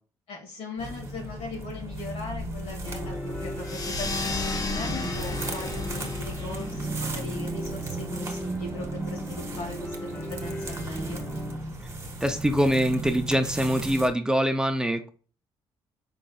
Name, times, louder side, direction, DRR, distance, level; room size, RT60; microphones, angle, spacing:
voice 1, 0.3-11.2, left 2 dB, 80° left, 0 dB, 2.2 m, -39 dB
sound 1, 0.8-14.1, right 2 dB, 25° right, 1.1 m, -35 dB
sound 2, 2.8-11.6, left 1 dB, 10° left, 1.4 m, -39 dB
sound 3, 3.6-8.7, left 3 dB, 35° left, 0.8 m, -35 dB
voice 2, 12.2-15.1, equal, 5° right, 6 dB, 0.6 m, -24 dB
5.1 x 3.8 x 2.3 m, 0.38 s
cardioid pair, 80°, 10 cm